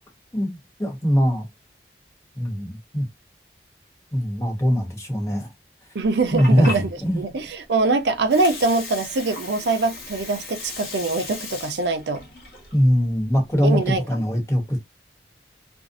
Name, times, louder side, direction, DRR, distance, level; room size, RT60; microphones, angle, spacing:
voice 1, 0.3-1.5 2.4-3.1 4.1-5.5 6.3-7.2 12.7-14.8, equal, 15° left, 0.8 m, -21 dB
voice 2, 5.9-6.9 7.2-12.2 13.6-14.0, right 3 dB, 80° right, 0.5 m, -23 dB
Water, 6.0-14.0, left 3 dB, 60° left, 0.9 m, -37 dB
2.5 x 2.0 x 2.5 m
head